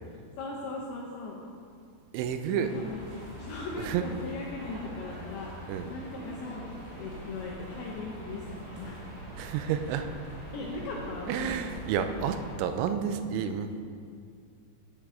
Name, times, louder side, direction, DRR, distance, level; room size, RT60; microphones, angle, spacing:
voice 1, 0.4-1.4 2.6-3.1 3.4-6.7 7.0-9.0 10.5-11.6, left 3 dB, 80° left, -3 dB, 2.3 m, -38 dB
voice 2, 2.1-2.7 3.7-4.0 5.7-5.9 9.4-10.1 11.3-13.8, right 8 dB, 85° right, 8 dB, 3.0 m, -30 dB
sound 1, 2.6-12.6, equal, 60° right, 2.3 m, -44 dB
10.0 x 8.6 x 3.6 m, 2.3 s
omnidirectional pair, 5.5 m